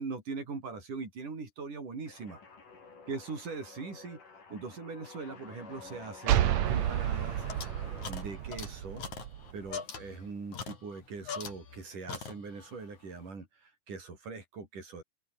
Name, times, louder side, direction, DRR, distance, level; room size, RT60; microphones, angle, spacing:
voice 1, 0.0-2.4 3.1-4.2 4.5-7.5 8.1-9.0 9.5-15.0, right 4 dB, 80° right, 7.8 m, -41 dB
sound 1, 2.1-8.8, left 4 dB, 90° left, 7.6 m, -51 dB
sound 2, 6.3-9.8, right 11 dB, 65° right, 2.4 m, -30 dB
sound 3, 6.7-11.8 12.1-12.8, left 6 dB, 70° left, 5.2 m, -43 dB
omnidirectional pair, 3.6 m